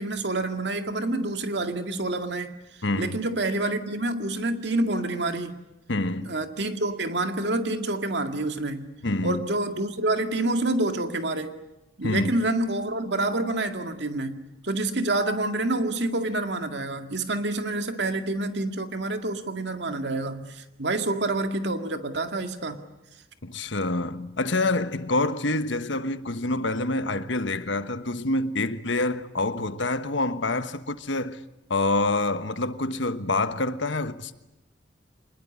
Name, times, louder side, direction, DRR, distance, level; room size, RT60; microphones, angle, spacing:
voice 1, 0.0-2.5 3.0-5.6 6.2-9.0 9.2-11.6 12.0-22.8, right 2 dB, 65° right, 2.1 m, -28 dB
voice 2, 2.8-3.2 5.9-6.3 9.0-9.4 12.0-12.3 23.4-31.4 31.7-34.3, left 2 dB, 80° left, 1.3 m, -27 dB
26.0 x 20.5 x 9.8 m
head